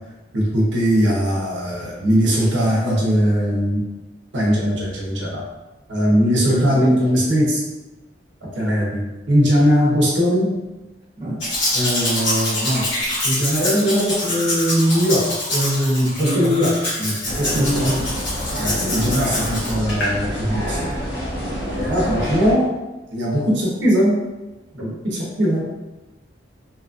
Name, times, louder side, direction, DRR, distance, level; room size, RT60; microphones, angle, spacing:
voice 1, 0.3-3.8 4.3-5.4 5.9-7.6 8.4-10.6 11.7-12.9 13.2-17.9 18.6-20.8 21.7-22.7 23.1-24.2 24.7-25.6, equal, 65° right, -4 dB, 0.7 m, -20 dB
voice 2, 6.3-6.9 11.2-11.4 16.2-16.5 17.5-18.2 22.0-22.2, right 1 dB, 25° right, -8 dB, 0.8 m, -25 dB
Domestic sounds home sounds, 11.4-20.1 20.7-20.8, left 1 dB, 75° left, 1.0 m, -25 dB
sound 1, 17.2-22.5, equal, 55° left, 0.8 m, -27 dB
2.8 x 2.4 x 2.5 m, 1.1 s
head